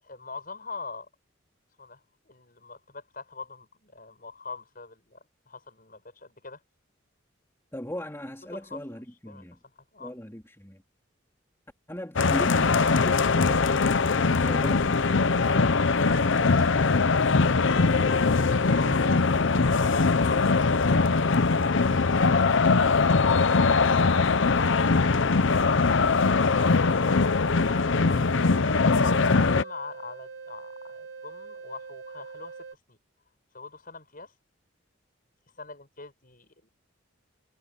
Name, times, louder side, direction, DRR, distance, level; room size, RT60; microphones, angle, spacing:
voice 1, 0.0-1.1 1.8-6.6 8.4-8.8 9.3-9.4 9.9-10.1 15.9-20.7 21.6-22.9 28.0-33.0 33.5-34.3 35.6-36.7, left 4 dB, 45° left, 7.7 m, -43 dB
voice 2, 7.7-9.6 10.0-10.8 11.9-14.0 14.4-15.0, equal, 10° left, 3.5 m, -38 dB
sound 1, 12.2-29.6, left 4 dB, 65° left, 0.7 m, -22 dB
sound 2, 14.0-23.8 24.1-24.2, equal, 20° right, 4.4 m, -48 dB
sound 3, 27.4-32.8, right 5 dB, 75° right, 5.8 m, -43 dB
head